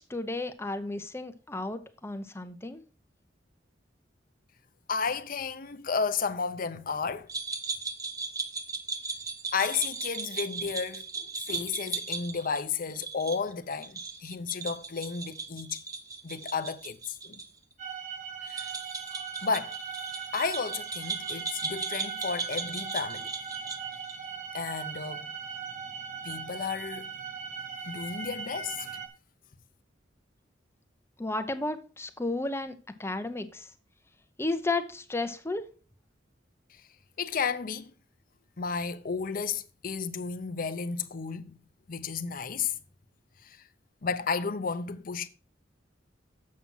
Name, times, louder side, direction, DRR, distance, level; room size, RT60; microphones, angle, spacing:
voice 1, 0.0-2.8 31.2-32.7 33.0-33.7 34.4-35.6, left 2 dB, 15° left, 0.8 m, -33 dB
voice 2, 4.9-7.3 9.5-15.8 16.2-17.4 18.4-18.7 19.4-19.8 20.3-23.3 24.5-25.3 26.2-27.1 27.9-29.0 36.7-36.8 37.2-37.9 38.6-41.6 41.9-42.8 43.4-43.6 44.0-45.3, left 5 dB, 50° left, 0.6 m, -33 dB
sound 1, 7.3-17.5 17.7-17.8 18.5-24.2, right 4 dB, 20° right, 0.8 m, -37 dB
sound 2, 17.8-29.1, right 6 dB, 40° right, 1.4 m, -39 dB
7.5 x 5.9 x 5.5 m
head